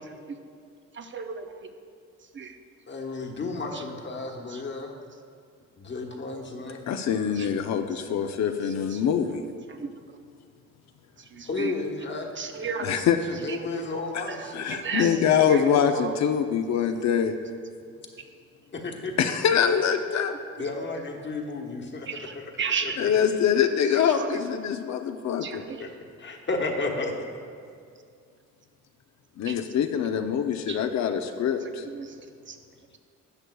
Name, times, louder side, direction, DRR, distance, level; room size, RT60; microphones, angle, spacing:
voice 1, 0.9-1.7 2.3-2.5 7.4-7.5 8.9-9.0 9.7-9.9 11.3-11.7 12.4-13.0 13.5-13.6 14.3-15.2 15.5-15.6 15.9-16.1 22.1-23.0 24.1-24.3 25.4-25.8 29.5-29.6 30.7-30.8 31.9-32.1 32.5-32.6, right 6 dB, 40° right, 6 dB, 0.7 m, -33 dB
voice 2, 2.9-4.9 5.8-6.8 11.4-12.7 13.2-16.1 18.7-19.2 20.6-22.5 22.8-23.3 25.8-25.9 26.2-27.1, left 3 dB, 40° left, 1 dB, 1.2 m, -33 dB
voice 3, 6.9-9.4 12.8-13.2 14.1-14.2 14.5-17.3 19.2-20.4 23.0-25.6 29.4-31.8, left 8 dB, 65° left, 6 dB, 0.6 m, -24 dB
12.5 x 8.0 x 2.3 m, 2.3 s
cardioid pair, 90°, 30 cm